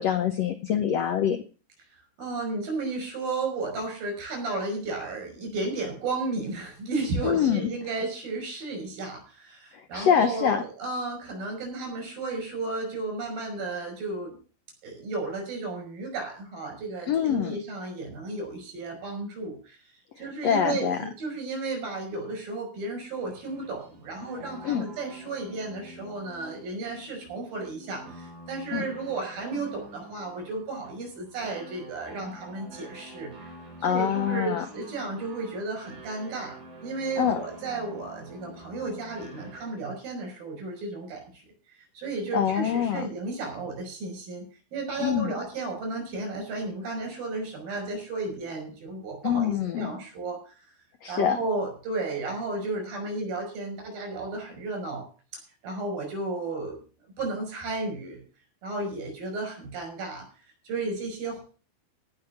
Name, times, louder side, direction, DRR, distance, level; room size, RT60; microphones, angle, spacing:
voice 1, 0.0-1.4 7.2-7.7 9.7-10.6 17.1-17.6 20.4-21.0 24.6-24.8 28.7-28.9 33.8-34.6 37.2-37.4 42.3-43.1 45.0-45.3 49.2-49.9 51.0-51.4, left 8 dB, 80° left, 9 dB, 1.5 m, -25 dB
voice 2, 1.9-14.4 14.8-19.8 20.2-33.5 33.9-41.4 41.9-50.6 51.1-55.0 55.3-56.8 57.2-58.2 58.6-60.2 60.6-61.4, right 3 dB, 80° right, 3 dB, 7.4 m, -33 dB
sound 1, 23.2-39.9, right 1 dB, 65° right, 5.9 m, -47 dB
16.5 x 5.9 x 6.9 m, 0.37 s
omnidirectional pair, 4.1 m